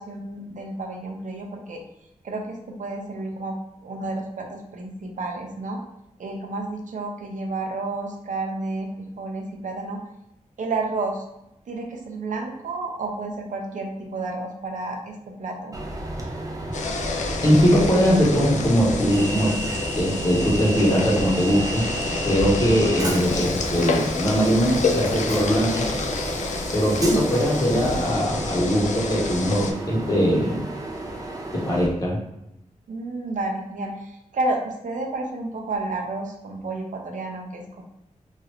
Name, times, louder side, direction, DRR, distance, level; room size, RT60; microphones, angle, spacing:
voice 1, 0.0-1.8 2.2-3.6 3.8-5.8 6.2-10.0 10.6-11.2 11.7-15.8 32.9-37.8, right 2 dB, 75° right, 2 dB, 0.5 m, -31 dB
Train, 15.7-31.9, right 1 dB, 25° right, 0.5 m, -32 dB
sound 1, 16.7-29.7, left 3 dB, 65° left, 0.4 m, -29 dB
voice 2, 17.4-19.6 20.0-21.9 22.2-25.9 26.7-30.6 31.5-32.2, equal, 25° left, -4 dB, 0.9 m, -21 dB
3.0 x 2.4 x 2.9 m, 0.87 s
wide cardioid pair, 140°, 13 cm